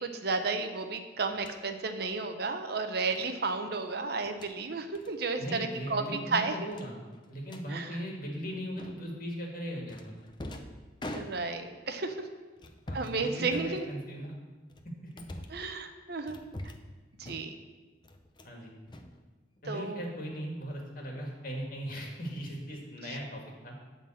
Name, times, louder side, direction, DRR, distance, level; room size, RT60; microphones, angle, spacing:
voice 1, 0.0-6.6 7.7-8.0 11.1-12.3 12.9-13.8 15.5-16.4 17.2-17.5 19.7-20.0, right 4 dB, 55° right, 7 dB, 0.8 m, -33 dB
sound 1, 1.3-1.6 3.1-3.3 4.2-4.5 4.9-5.1 5.4-5.6 5.9-6.0 6.7-7.7 8.8-9.2 9.9-11.8 12.6-13.2 13.5-14.2 14.7-15.7 16.3-16.9 17.2-17.7 18.0-18.6 18.9-19.7, left 1 dB, 25° left, 0.6 m, -44 dB
voice 2, 5.4-7.0 7.3-10.2 12.9-14.3 14.8-15.1 18.4-18.7 19.6-23.8, equal, 50° left, 0 dB, 1.9 m, -38 dB
11.5 x 4.0 x 7.7 m, 1.3 s
head